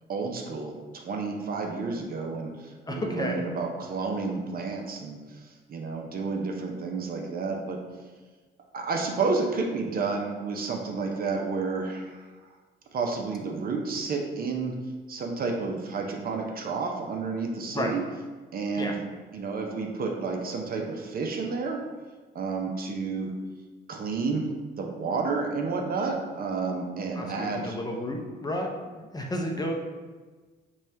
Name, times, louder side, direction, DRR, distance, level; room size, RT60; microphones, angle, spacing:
voice 1, 0.1-7.8 8.7-12.3 12.9-14.8 15.1-18.0 18.5-19.0 19.3-21.8 22.3-23.3 23.9-27.8, right 4 dB, 50° right, 2 dB, 0.6 m, -31 dB
voice 2, 2.8-3.4 17.7-17.9 18.8-19.0 27.2-28.7 28.9-29.7, left 1 dB, 20° left, 0 dB, 0.5 m, -31 dB
4.2 x 2.3 x 3.2 m, 1.3 s
cardioid pair, 90°, 20 cm